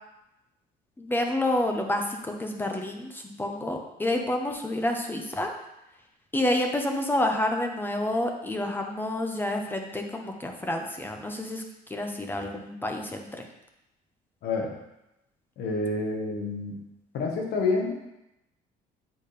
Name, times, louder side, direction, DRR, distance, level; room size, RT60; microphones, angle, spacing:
voice 1, 1.0-5.5 6.3-11.6 11.9-13.4, left 1 dB, 10° left, 3 dB, 0.9 m, -29 dB
voice 2, 14.4-14.7 15.6-16.8 17.1-18.1, left 3 dB, 70° left, 1 dB, 1.4 m, -28 dB
8.5 x 4.2 x 3.4 m, 0.90 s
cardioid pair, 110°, 17 cm